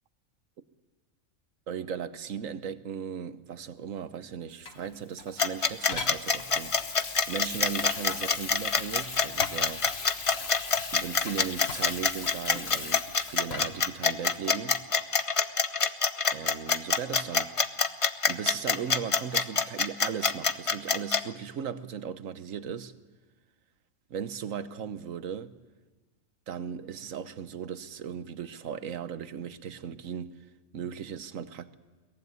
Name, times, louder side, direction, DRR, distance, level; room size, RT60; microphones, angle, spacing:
voice 1, 1.7-6.7 7.0-9.8 10.9-14.8 16.3-17.5 18.3-22.9 24.1-25.6 26.5-30.3 30.7-31.7, right 7 dB, 70° right, 1.3 m, -37 dB
Water tap faucet / Sink (filling or washing), 4.7-13.9 14.4-14.6, left 5 dB, 50° left, 1.5 m, -39 dB
sound 1, 5.4-21.2, left 5 dB, 30° left, 0.6 m, -25 dB
22.5 x 17.5 x 9.5 m
omnidirectional pair, 1.4 m